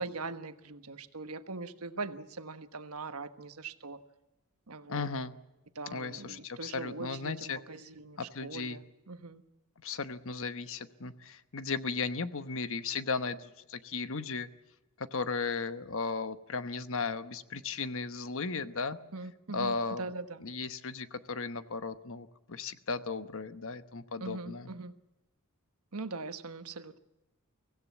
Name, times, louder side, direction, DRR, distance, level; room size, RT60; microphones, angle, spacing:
voice 1, 0.0-4.0 4.7-5.1 5.7-9.4 19.1-20.5 24.2-24.9 25.9-27.0, right 3 dB, 75° right, 10 dB, 1.3 m, -41 dB
voice 2, 4.9-5.3 5.9-7.6 8.2-8.8 9.8-14.5 15.0-19.0 19.5-20.0 20.4-24.7, left 4 dB, 60° left, 11 dB, 1.1 m, -36 dB
24.0 x 16.5 x 8.4 m, 1.0 s
head